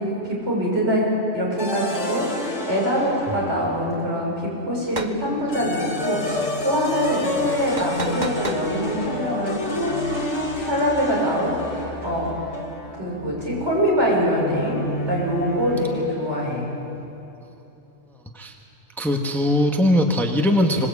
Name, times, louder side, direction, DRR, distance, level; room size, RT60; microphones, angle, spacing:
voice 1, 0.0-10.3 10.6-12.3 13.0-16.6, equal, 60° right, -4 dB, 6.7 m, -24 dB
sound 1, 1.6-4.2 5.2-16.3, left 1 dB, 75° left, 4.1 m, -31 dB
sound 2, 4.9-5.2 7.8-8.7, right 3 dB, 40° right, 1.0 m, -31 dB
voice 2, 19.0-20.9, left 1 dB, ahead, 2 dB, 1.3 m, -20 dB
25.5 x 19.0 x 8.5 m, 2.9 s
omnidirectional pair, 1.3 m